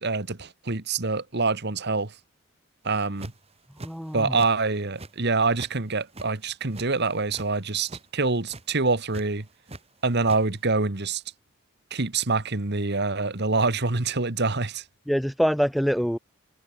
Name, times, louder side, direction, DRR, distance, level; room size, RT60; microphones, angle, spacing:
voice 1, 0.0-2.1 2.8-3.3 4.1-9.5 10.0-11.2 11.9-14.8, right 3 dB, 50° right, 1.6 m, -25 dB
sound 1, 2.9-3.5 3.8-4.5 4.8-5.8 6.0-7.5 7.8-8.1 8.4-8.6 9.1-9.8 10.1-10.4, right 2 dB, 30° right, 2.2 m, -41 dB
voice 2, 3.8-4.4 15.1-16.2, equal, ahead, 0.5 m, -25 dB
head